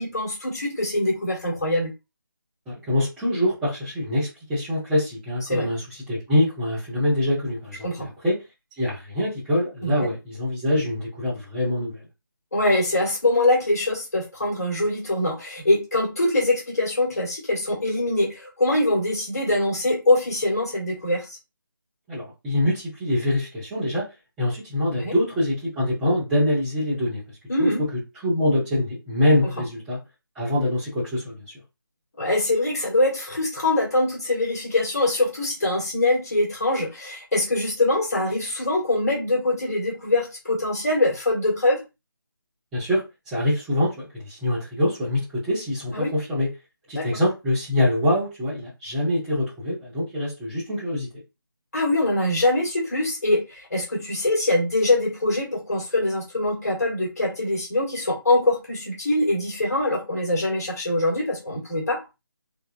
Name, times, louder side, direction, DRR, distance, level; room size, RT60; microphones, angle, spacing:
voice 1, 0.0-1.9 5.4-5.7 7.8-8.1 9.8-10.1 12.5-21.4 24.9-25.1 27.5-27.9 32.2-41.8 45.9-46.1 46.9-47.1 51.7-62.0, left 2 dB, 45° left, 1.2 m, -23 dB
voice 2, 2.7-8.4 8.8-12.0 22.1-24.0 24.4-27.2 27.6-27.9 28.2-30.0 30.3-31.4 42.7-46.5 46.9-51.1, left 1 dB, 5° right, 0.8 m, -24 dB
3.5 x 2.2 x 2.4 m
figure-of-eight pair, 155°, 12 cm